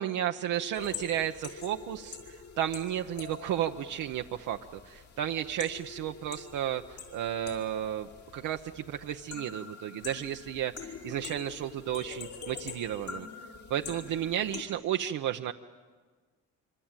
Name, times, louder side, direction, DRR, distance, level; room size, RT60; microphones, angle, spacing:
voice 1, 0.0-13.3 13.7-15.5, right 11 dB, 80° right, 4 dB, 0.9 m, -33 dB
sound 1, 0.7-14.6, left 6 dB, 70° left, 5.3 m, -45 dB
25.0 x 25.0 x 9.0 m, 1.5 s
cardioid pair, 90°, 30 cm